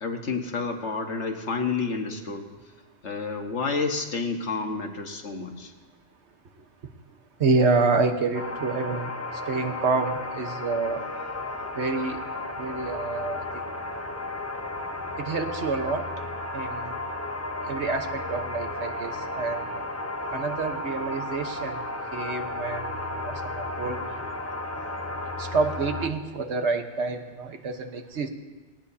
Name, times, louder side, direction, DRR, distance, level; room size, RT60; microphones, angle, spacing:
voice 1, 0.0-2.5 3.0-5.7, left 4 dB, 80° left, 4 dB, 1.7 m, -30 dB
voice 2, 7.4-9.1 9.5-11.0 11.7-12.2 12.6-13.6 15.2-16.0 16.5-16.9 17.7-19.6 20.3-21.8 22.1-24.0 25.4-28.3, right 4 dB, 75° right, 6 dB, 1.5 m, -28 dB
sound 1, 8.3-26.1, left 2 dB, 15° left, 0.8 m, -33 dB
20.0 x 18.0 x 2.8 m, 1.3 s
omnidirectional pair, 1.2 m